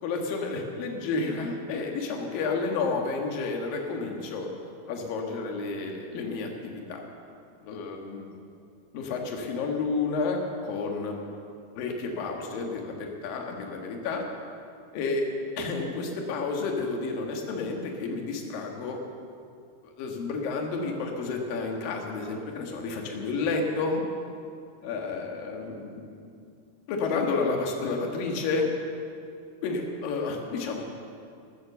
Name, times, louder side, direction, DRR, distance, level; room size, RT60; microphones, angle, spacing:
voice 1, 0.0-4.5 4.9-7.0 7.6-8.4 8.9-11.2 11.8-14.2 14.9-15.3 15.6-19.0 19.8-24.0 24.8-26.4 26.9-28.7 29.6-30.8, left 4 dB, 60° left, 1 dB, 2.8 m, -31 dB
14.5 x 14.5 x 7.0 m, 2.5 s
omnidirectional pair, 5.7 m